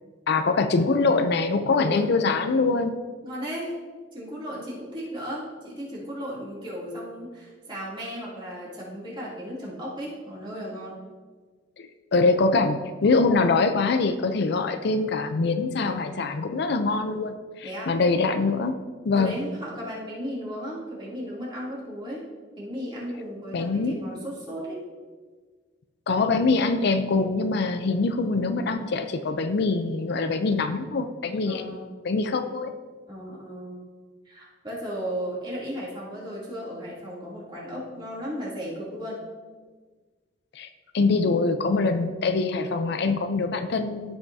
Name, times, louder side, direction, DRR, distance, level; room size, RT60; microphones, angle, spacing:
voice 1, 0.3-2.9 11.8-18.8 19.1-19.4 23.5-24.0 26.1-31.6 32.0-32.7 40.6-40.7 40.9-44.2, left 3 dB, 65° left, 8 dB, 0.5 m, -24 dB
voice 2, 3.2-3.8 4.1-11.0 17.6-18.0 19.1-22.3 22.6-24.8 31.5-31.9 33.1-33.8 34.2-39.2, equal, 25° right, -6 dB, 2.8 m, -35 dB
14.0 x 5.8 x 2.7 m, 1.4 s
head